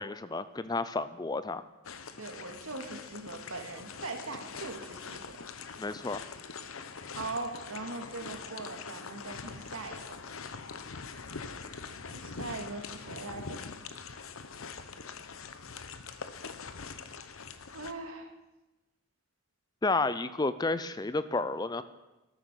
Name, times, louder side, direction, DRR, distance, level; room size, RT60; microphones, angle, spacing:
voice 1, 0.0-1.6 5.8-6.2 19.8-21.8, left 3 dB, 20° left, 14 dB, 0.4 m, -31 dB
sound 1, 1.8-17.9, left 5 dB, 70° left, 0.9 m, -43 dB
voice 2, 2.2-5.5 7.1-10.2 12.1-13.6 17.7-18.3, right 3 dB, 75° right, 4 dB, 2.2 m, -40 dB
13.5 x 13.0 x 6.4 m, 1.0 s
head